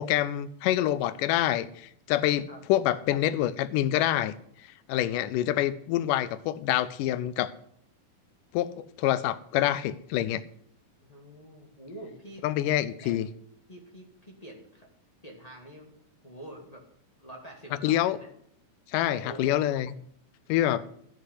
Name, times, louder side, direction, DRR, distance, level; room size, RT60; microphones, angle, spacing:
voice 1, 0.0-4.3 4.9-7.5 8.5-10.4 12.4-13.3 17.8-18.2 18.9-19.9 20.5-20.9, left 13 dB, 80° left, 14 dB, 2.1 m, -26 dB
voice 2, 11.0-12.4 12.8-13.2 13.7-14.9 15.2-15.9 16.2-16.8 17.2-18.3 19.1-19.7, right 1 dB, 20° left, -1 dB, 1.0 m, -45 dB
12.5 x 6.6 x 8.0 m, 0.68 s
omnidirectional pair, 4.1 m